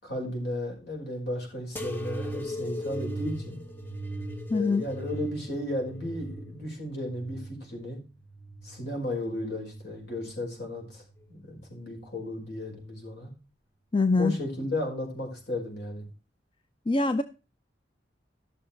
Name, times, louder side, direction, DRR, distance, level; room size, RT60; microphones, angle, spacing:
voice 1, 0.0-3.6 4.5-8.0 8.6-11.0 11.3-13.3 14.2-16.1, left 1 dB, 60° left, 5.2 m, -34 dB
sound 1, 1.7-9.0 9.5-10.3 11.0-11.5 12.5-12.6, equal, 10° left, 1.1 m, -38 dB
voice 2, 4.5-4.8 13.9-14.3 16.9-17.2, left 3 dB, 30° left, 0.5 m, -23 dB
13.5 x 6.5 x 4.4 m
head